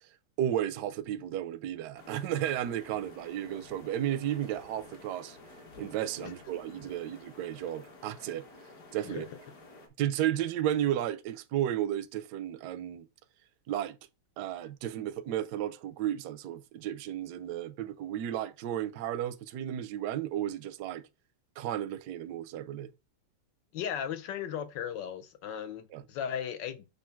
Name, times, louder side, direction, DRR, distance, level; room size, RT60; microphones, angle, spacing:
voice 1, 0.4-5.4 5.8-8.4 8.9-9.3 10.0-13.1 13.7-14.0 14.4-21.0 21.6-22.9 25.9-26.0, right 11 dB, 70° right, 1.0 m, -33 dB
sound 1, 1.9-9.9, left 2 dB, 50° left, 1.8 m, -52 dB
voice 2, 23.7-26.9, left 8 dB, 65° left, 1.3 m, -36 dB
6.9 x 2.8 x 5.7 m
omnidirectional pair, 2.2 m